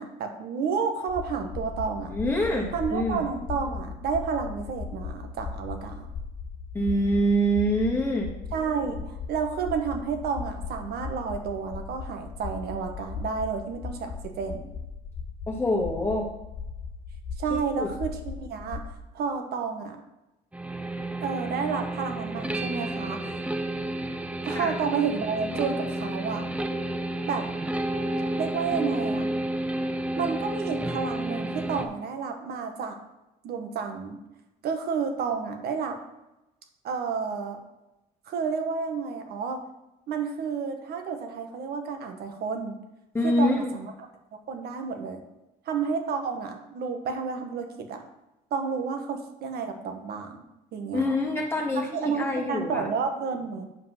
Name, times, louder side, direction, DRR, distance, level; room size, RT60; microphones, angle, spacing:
voice 1, 0.0-2.1 2.7-6.1 8.5-14.7 17.4-20.0 21.2-23.3 24.4-26.4 27.3-27.5 28.4-29.3 30.2-33.0 33.4-34.2 34.6-36.0 36.8-37.6 38.3-39.6 40.1-42.8 43.2-44.1 44.5-45.2 45.7-48.0 48.5-50.4 50.7-51.1 51.8-53.6, right 5 dB, 70° right, 5 dB, 1.5 m, -31 dB
sound 1, 1.1-18.9, left 5 dB, 55° left, 1.1 m, -38 dB
voice 2, 2.1-3.2 6.7-8.3 15.5-16.3 17.7-17.9 24.5-24.7 43.1-43.7 50.9-51.9 52.2-52.8, equal, 15° left, -2 dB, 1.6 m, -25 dB
sound 2, 20.5-31.8, right 1 dB, 10° right, 0.8 m, -31 dB
8.4 x 5.3 x 5.9 m, 0.94 s
cardioid pair, 110°, 17 cm